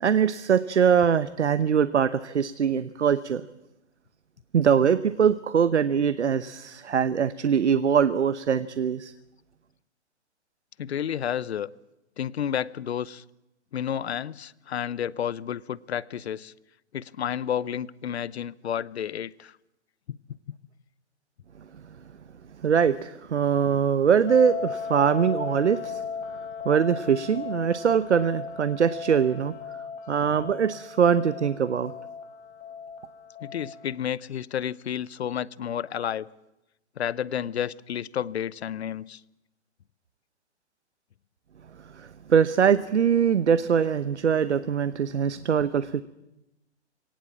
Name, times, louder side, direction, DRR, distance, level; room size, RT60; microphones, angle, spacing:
voice 1, 0.0-3.4 4.5-9.1 22.6-26.0 26.6-29.5 30.1-31.9 41.9-46.0, right 7 dB, 80° right, 15 dB, 0.9 m, -22 dB
voice 2, 10.8-11.7 12.2-13.2 13.7-16.5 16.9-19.5 33.4-36.3 37.0-39.2 45.3-45.4, left 9 dB, 65° left, 22 dB, 0.8 m, -31 dB
sound 1, 24.3-33.9, left 6 dB, 30° left, 4.2 m, -37 dB
23.5 x 18.0 x 7.3 m, 0.94 s
hypercardioid pair, 130°, 34 cm